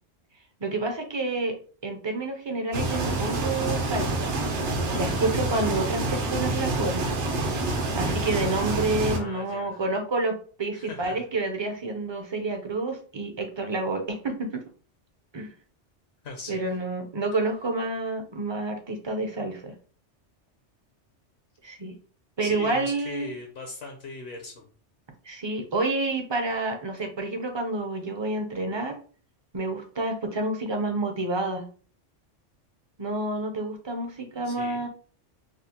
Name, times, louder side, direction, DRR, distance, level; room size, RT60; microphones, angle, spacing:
voice 1, 0.6-1.6 1.8-4.3 4.9-7.1 8.0-14.6 15.3-15.5 16.5-19.7 21.6-21.9 22.4-23.3 25.3-29.0 29.5-31.6 33.0-34.9, right 2 dB, 35° right, 5 dB, 0.4 m, -29 dB
sound 1, 2.7-9.2, right 2 dB, 70° right, 1.1 m, -27 dB
voice 2, 9.1-9.8 10.7-11.1 16.2-16.6 22.4-24.7 34.4-34.8, left 3 dB, 65° left, 2 dB, 0.9 m, -39 dB
5.0 x 2.0 x 2.8 m, 0.41 s
omnidirectional pair, 1.2 m